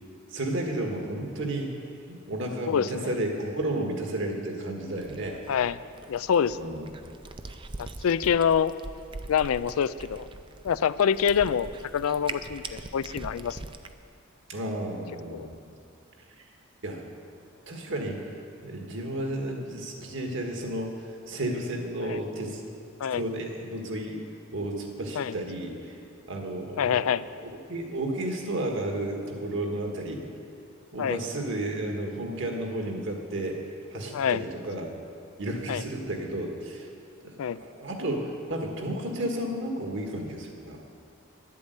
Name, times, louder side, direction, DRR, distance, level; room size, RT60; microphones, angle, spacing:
voice 1, 0.3-1.8 2.1-5.4 6.6-6.9 14.5-15.7 16.8-17.0 17.7-18.2 18.6-21.0 21.3-22.6 23.1-24.2 24.5-26.0 26.3-30.2 30.9-33.6 33.9-34.9 35.4-36.9 37.2-40.8, right 1 dB, 60° right, 2 dB, 1.7 m, -32 dB
voice 2, 2.7-3.1 5.5-5.8 6.1-6.6 7.8-8.7 9.3-10.3 10.6-13.6 15.3-15.5 22.0-22.2 23.0-23.2 25.2-25.4 26.8-27.2 31.0-31.2 34.1-34.4 35.7-35.8 37.4-37.6, left 7 dB, 75° left, 16 dB, 0.4 m, -26 dB
Cat, 4.9-13.9, right 3 dB, 25° right, 0.5 m, -42 dB
11.5 x 8.4 x 8.1 m, 2.4 s
head